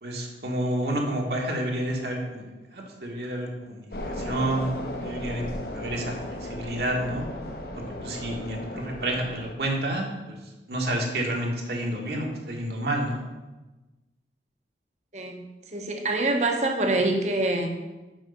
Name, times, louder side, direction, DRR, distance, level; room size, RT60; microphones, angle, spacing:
voice 1, 0.0-3.9 4.1-4.7 5.0-7.2 8.0-10.4 10.7-13.2, right 1 dB, 65° right, -1 dB, 1.6 m, -29 dB
sound 1, 3.9-9.5, left 1 dB, 55° left, 1.0 m, -35 dB
voice 2, 15.7-17.7, right 2 dB, 40° right, 4 dB, 1.0 m, -25 dB
6.3 x 5.4 x 6.7 m, 1.1 s
head